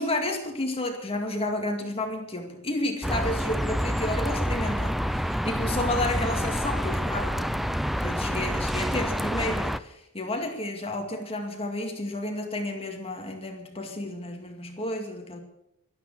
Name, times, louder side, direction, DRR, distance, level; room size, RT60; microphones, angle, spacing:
voice 1, 0.0-15.4, left 1 dB, 25° left, 3 dB, 2.2 m, -31 dB
sound 1, 3.0-9.8, equal, ahead, 0.4 m, -28 dB
12.5 x 12.0 x 7.4 m, 0.83 s
head